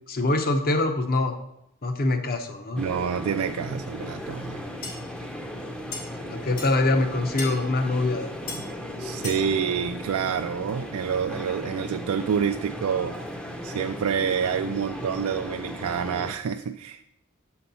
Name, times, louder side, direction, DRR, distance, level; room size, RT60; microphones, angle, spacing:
voice 1, 0.1-1.3 1.8-2.8 6.3-8.3, left 2 dB, 45° left, 7 dB, 0.8 m, -24 dB
voice 2, 2.7-4.6 9.0-13.2 13.6-17.0, right 7 dB, 70° right, 7 dB, 0.3 m, -28 dB
sound 1, 2.8-16.3, equal, 5° left, 0.6 m, -36 dB
sound 2, 4.8-4.9 5.9-6.0 6.6-6.7 7.4-7.5 8.5-8.6 9.2-9.4, left 3 dB, 75° left, 2.8 m, -34 dB
6.9 x 4.3 x 5.4 m, 0.80 s
head